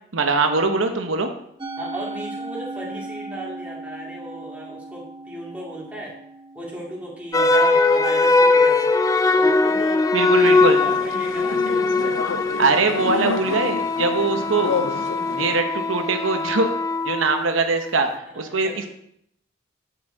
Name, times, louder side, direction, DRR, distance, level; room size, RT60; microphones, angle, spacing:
voice 1, 0.1-1.3 10.1-10.8 12.6-14.8 15.4-16.7 17.0-18.1 18.4-18.9, right 3 dB, 85° right, 5 dB, 0.9 m, -22 dB
Musical instrument, 1.6-8.0, right 2 dB, 25° right, 1.0 m, -37 dB
voice 2, 1.8-6.1 6.5-8.9 9.3-10.0 10.3-12.2 18.3-18.9, right 1 dB, 5° right, -4 dB, 2.4 m, -36 dB
sound 1, 7.3-17.7, left 3 dB, 15° left, 0.3 m, -21 dB
sound 2, 10.4-15.6, left 5 dB, 80° left, 0.5 m, -30 dB
9.6 x 6.8 x 3.8 m, 0.72 s
head